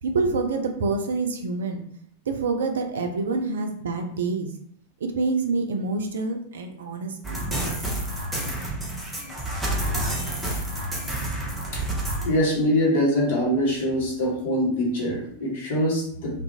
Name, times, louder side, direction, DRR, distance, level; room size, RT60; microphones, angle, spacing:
voice 1, 0.0-1.8 2.3-4.5 5.0-7.5 8.0-8.1, right 3 dB, 65° right, 4 dB, 0.3 m, -27 dB
sound 1, 7.2-12.3, right 1 dB, 5° right, 0.7 m, -29 dB
voice 2, 11.5-11.8 12.2-16.4, equal, 55° left, -2 dB, 0.8 m, -24 dB
2.4 x 2.0 x 2.7 m, 0.66 s
figure-of-eight pair, 90°, 0 cm